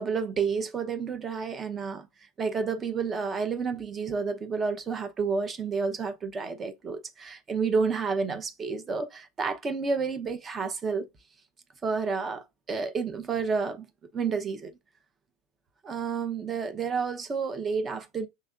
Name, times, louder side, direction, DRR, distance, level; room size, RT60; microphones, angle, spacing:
voice 1, 0.0-2.1 2.4-11.1 11.8-13.9 14.1-14.7 15.8-18.3, right 5 dB, 25° right, 0.9 m, -30 dB
6.5 x 3.3 x 2.4 m
hypercardioid pair, 85°, 0 cm